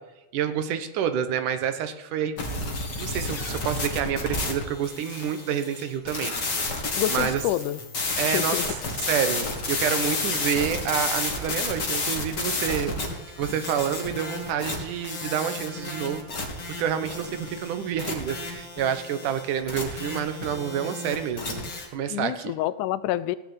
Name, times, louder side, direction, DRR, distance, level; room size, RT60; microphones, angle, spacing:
voice 1, 0.3-2.4 3.0-6.4 6.7-6.8 7.1-7.4 8.2-8.6 9.0-12.9 13.4-16.5 16.8-21.6 21.9-22.5, right 8 dB, 85° right, 10 dB, 2.7 m, -28 dB
sound 1, 2.4-21.9, left 3 dB, 35° left, 2.7 m, -31 dB
voice 2, 7.0-7.8 8.3-8.7 22.1-23.4, left 14 dB, 90° left, 16 dB, 2.2 m, -27 dB
16.5 x 6.6 x 9.9 m, 1.0 s
omnidirectional pair, 3.5 m